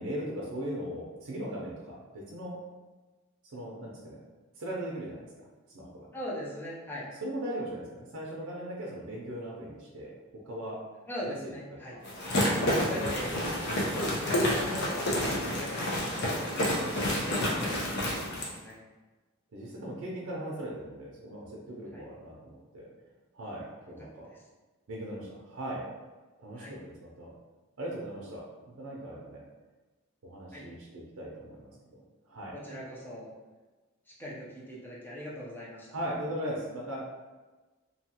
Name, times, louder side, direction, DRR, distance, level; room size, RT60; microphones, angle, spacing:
voice 1, 0.0-2.6 3.4-4.2 4.6-5.5 5.7-6.1 7.2-10.1 10.4-10.8 11.2-11.5 11.9-12.0 12.5-13.0 16.0-16.1 16.3-16.6 19.5-22.9 23.3-24.3 24.9-25.8 26.4-27.3 27.8-29.4 30.2-32.6 35.9-37.0, right 1 dB, 85° right, -3 dB, 0.5 m, -39 dB
voice 2, 6.1-7.1 11.1-12.0 12.9-13.3 14.2-18.8 21.9-22.1 24.3-24.4 26.5-26.7 30.5-30.7 32.5-33.3 34.1-35.9, equal, 10° left, -7 dB, 0.5 m, -41 dB
sound 1, 12.0-18.5, left 1 dB, 55° left, 0.6 m, -29 dB
2.8 x 2.4 x 2.8 m, 1.2 s
head